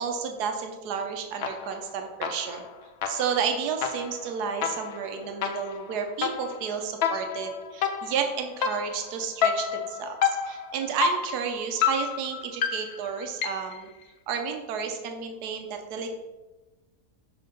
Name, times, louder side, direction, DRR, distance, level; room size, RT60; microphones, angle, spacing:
voice 1, 0.0-2.6 3.1-13.9 14.3-16.2, right 6 dB, 80° right, 5 dB, 1.3 m, -31 dB
sound 1, 1.4-1.9 2.2-13.8, left 7 dB, 85° left, 0.5 m, -30 dB
5.8 x 3.6 x 5.2 m, 1.1 s
omnidirectional pair, 1.7 m